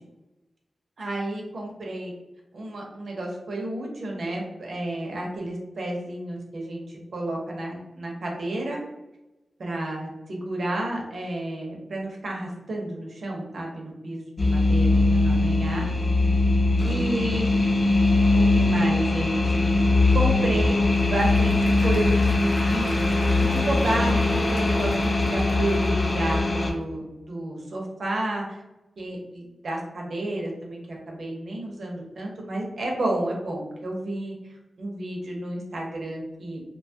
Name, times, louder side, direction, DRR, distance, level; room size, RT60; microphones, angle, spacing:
voice 1, 1.0-2.1 2.5-8.8 9.6-15.9 16.8-17.5 18.3-19.6 20.1-20.8 21.1-22.9 23.4-27.0 27.3-28.6 29.0-34.3 34.8-36.6, right 1 dB, 65° right, -1 dB, 0.7 m, -31 dB
sound 1, 14.4-26.7, left 2 dB, 30° left, 0.4 m, -21 dB
Applause / Crowd, 20.6-26.8, left 1 dB, 65° left, 0.7 m, -41 dB
2.9 x 2.2 x 2.7 m, 1.0 s
wide cardioid pair, 120°, 0 cm